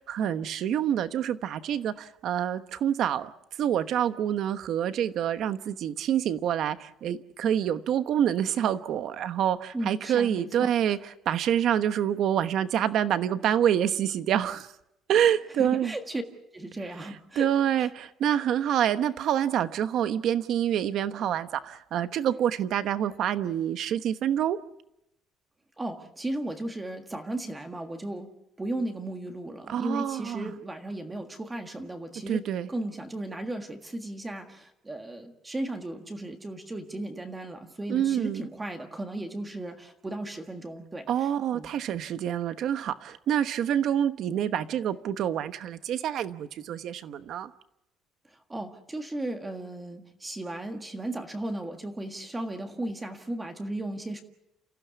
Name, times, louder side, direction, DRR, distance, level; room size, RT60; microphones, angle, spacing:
voice 1, 0.0-3.3 3.6-11.0 11.2-14.7 15.1-15.9 17.0-17.1 17.4-24.6 29.7-30.5 32.3-32.7 37.9-38.4 41.1-47.5, right 10 dB, 50° right, 1.1 m, -27 dB
voice 2, 9.7-10.9 15.6-16.2 16.5-17.5 17.8-17.9 25.8-28.3 28.6-41.7 48.5-54.2, right 1 dB, 10° right, 1.6 m, -35 dB
29.0 x 15.5 x 8.4 m
cardioid pair, 180°, 0 cm